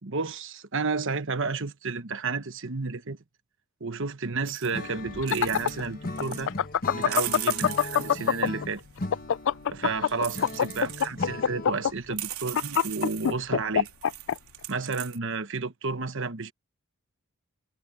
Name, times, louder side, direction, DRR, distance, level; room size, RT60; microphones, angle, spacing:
voice 1, 0.0-3.2 3.8-6.5 6.9-8.8 9.7-13.9 14.7-16.5, right 4 dB, 60° right, 1.2 m, -31 dB
sound 1, 4.4-4.7 5.1-5.9 6.2-6.4 7.0-8.8 10.1-11.3 11.8-11.9 12.2-13.3 13.8-15.2, right 14 dB, 85° right, 3.2 m, -38 dB
Acoustic guitar / Strum, 4.7-11.9, left 2 dB, 40° left, 1.4 m, -38 dB
sound 2, 5.1-8.6 9.0-14.3, left 8 dB, 60° left, 0.4 m, -23 dB
head